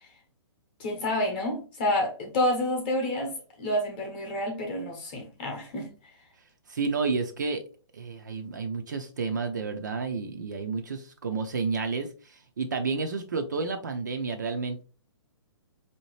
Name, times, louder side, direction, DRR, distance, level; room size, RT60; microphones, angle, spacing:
voice 1, 0.8-5.9, left 1 dB, 20° left, 0.9 m, -29 dB
voice 2, 6.7-7.6 7.9-14.8, right 4 dB, 40° right, 0.4 m, -31 dB
4.9 x 2.7 x 3.1 m
hypercardioid pair, 180°, 15 cm